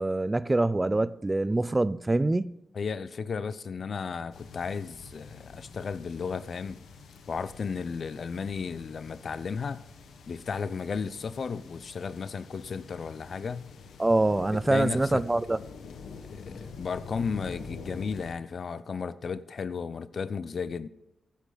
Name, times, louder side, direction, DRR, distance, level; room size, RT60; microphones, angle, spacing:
voice 1, 0.0-2.5 14.0-15.6, right 2 dB, 20° right, 0.4 m, -25 dB
voice 2, 2.7-6.8 7.3-9.8 10.3-13.7 14.5-15.2 16.3-20.9, left 5 dB, 55° left, 0.6 m, -34 dB
sound 1, 4.3-18.3, left 4 dB, 90° left, 1.3 m, -46 dB
15.0 x 10.5 x 4.0 m
cardioid pair, 90°, 0 cm